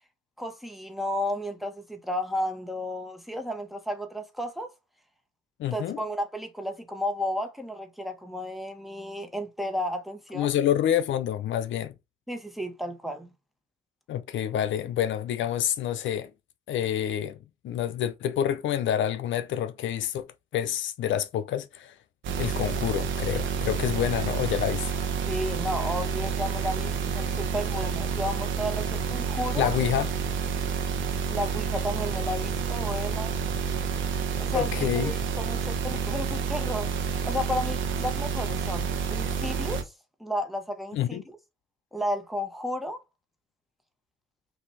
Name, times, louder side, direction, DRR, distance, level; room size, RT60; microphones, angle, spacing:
voice 1, 0.4-4.7 5.7-10.5 12.3-13.3 25.3-29.7 31.3-33.4 34.4-36.9 37.2-39.9 40.2-41.2 41.9-43.0, left 1 dB, ahead, 1.2 m, -33 dB
voice 2, 5.6-6.0 10.3-11.9 14.1-16.3 16.7-17.4 17.6-20.3 20.5-21.9 22.4-24.9 29.6-30.1 34.5-35.1 40.9-41.2, left 10 dB, 75° left, 0.6 m, -27 dB
sound 1, 22.2-39.8, right 6 dB, 75° right, 1.1 m, -29 dB
5.8 x 2.6 x 3.2 m
cardioid pair, 90°, 20 cm